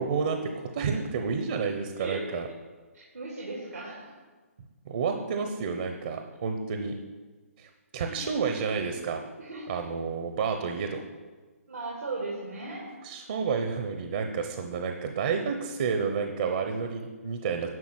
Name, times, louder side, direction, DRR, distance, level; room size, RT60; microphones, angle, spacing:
voice 1, 0.0-2.4 4.8-6.9 7.6-9.2 9.7-11.0 13.0-17.7, right 5 dB, 40° right, 5 dB, 1.0 m, -30 dB
voice 2, 2.0-2.5 2.9-4.1 8.0-8.4 9.4-9.7 11.7-12.9, right 2 dB, 90° right, -4 dB, 3.4 m, -37 dB
11.0 x 6.8 x 7.8 m, 1.4 s
hypercardioid pair, 165°, 8 cm